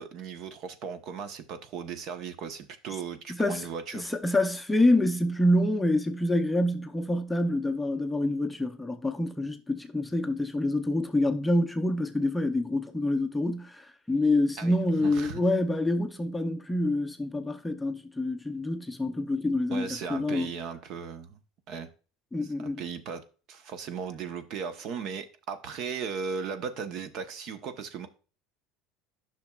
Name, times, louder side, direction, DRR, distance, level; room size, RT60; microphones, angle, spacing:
voice 1, 0.0-4.2 14.6-15.4 19.7-21.4 21.7-21.9 22.6-23.2 23.5-28.1, right 6 dB, 50° right, 1.0 m, -37 dB
voice 2, 3.3-3.7 3.9-20.5 22.3-22.8, left 1 dB, 5° left, 0.6 m, -27 dB
10.5 x 5.9 x 2.4 m
cardioid pair, 145°, 0 cm